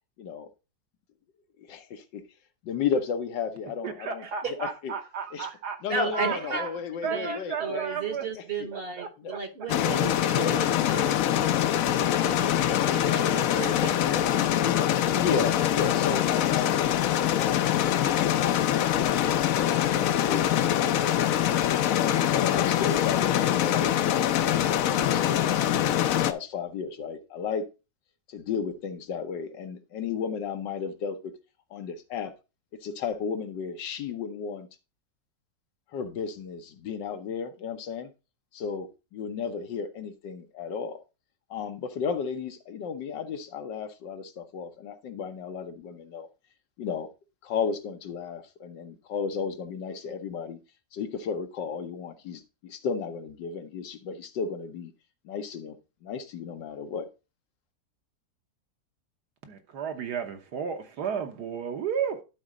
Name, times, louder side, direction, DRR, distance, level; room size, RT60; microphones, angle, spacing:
voice 1, 0.2-0.5 1.6-2.2 2.6-4.2 4.6-4.9 5.3-5.5 5.8-7.8 8.4-8.7 9.2-9.3 10.3-10.6 14.5-17.7 18.0-20.7 21.4-21.6 21.9-25.8 26.1-27.7 28.3-31.3 31.7-32.3 32.8-34.7 35.9-38.1 38.5-41.0 41.5-46.3 46.8-47.1 47.4-50.6 50.9-54.9 55.2-55.8 56.0-57.1, left 6 dB, 85° left, 1.6 m, -34 dB
voice 2, 3.8-5.8 6.1-6.7 7.0-8.3 8.7-9.4 59.4-62.2, right 7 dB, 70° right, 1.6 m, -33 dB
voice 3, 5.9-6.6 7.0-7.3 7.6-14.5, right 4 dB, 40° right, 1.0 m, -35 dB
sound 1, 9.7-26.3, left 11 dB, 65° left, 0.8 m, -24 dB
12.0 x 4.1 x 3.7 m
omnidirectional pair, 1.9 m